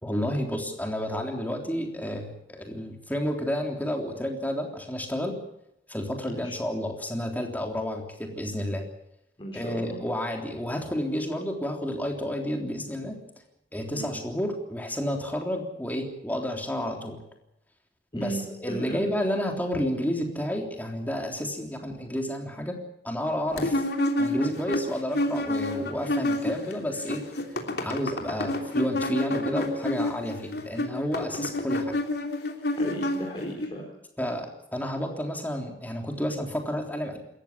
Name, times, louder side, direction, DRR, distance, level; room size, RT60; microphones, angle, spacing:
voice 1, 0.0-5.4 5.9-8.9 9.5-13.2 13.7-17.2 18.1-22.8 23.0-23.8 24.2-27.3 27.8-31.9 34.2-37.2, equal, 10° left, 2 dB, 3.5 m, -31 dB
voice 2, 9.4-10.0 13.9-14.1 18.1-18.4 18.7-19.0 32.8-33.8, right 1 dB, 30° left, -2 dB, 4.2 m, -35 dB
sound 1, 23.6-26.7 27.0-33.7, left 1 dB, 65° left, 3.2 m, -28 dB
27.0 x 14.5 x 8.6 m, 0.81 s
head